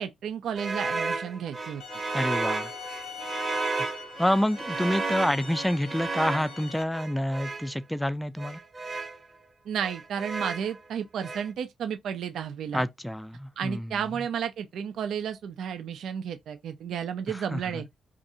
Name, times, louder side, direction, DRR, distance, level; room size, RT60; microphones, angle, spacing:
voice 1, 0.0-1.8 9.7-12.8 13.6-17.9, right 8 dB, 80° right, 0.5 m, -32 dB
sound 1, 0.6-7.7 8.4-9.2 9.8-10.8 11.2-11.5, right 3 dB, 45° right, 0.8 m, -33 dB
sound 2, 1.8-6.8, left 6 dB, 80° left, 0.6 m, -42 dB
voice 2, 2.1-2.7 3.8-3.9 4.2-8.6 12.7-14.1 17.3-17.8, equal, 5° left, 0.5 m, -28 dB
2.6 x 2.5 x 4.1 m
supercardioid pair, 60°, 0 cm